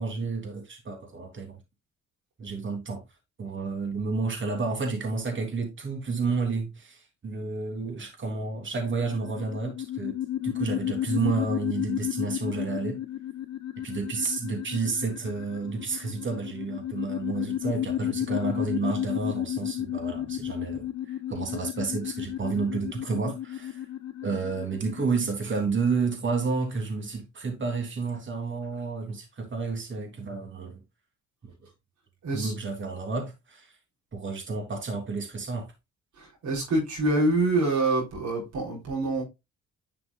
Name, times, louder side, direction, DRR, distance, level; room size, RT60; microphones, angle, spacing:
voice 1, 0.0-1.6 2.4-3.0 3.4-10.1 10.4-13.0 13.8-23.8 24.2-30.8 31.4-31.5 32.3-33.7 34.1-35.7, right 4 dB, 40° right, 3.2 m, -31 dB
sound 1, 8.8-25.2, left 11 dB, 60° left, 1.2 m, -33 dB
voice 2, 36.2-39.2, right 2 dB, 70° right, 4.1 m, -26 dB
10.5 x 6.0 x 2.4 m
cardioid pair, 90°, 30 cm